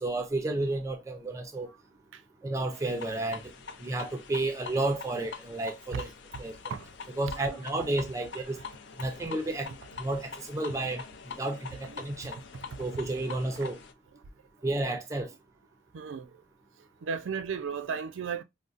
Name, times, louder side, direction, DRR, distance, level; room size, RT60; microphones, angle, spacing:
voice 1, 0.0-1.7 2.4-3.5 3.8-6.1 6.4-6.6 7.2-8.6 9.0-9.7 10.0-12.4 12.8-13.8 14.6-15.3, right 2 dB, 15° right, 0.4 m, -31 dB
sound 1, 2.7-13.9, left 5 dB, 70° left, 0.5 m, -45 dB
voice 2, 6.7-7.6 9.7-9.8 11.9-12.0 15.9-16.3 17.0-18.4, right 6 dB, 85° right, 0.4 m, -35 dB
3.8 x 2.0 x 2.4 m
head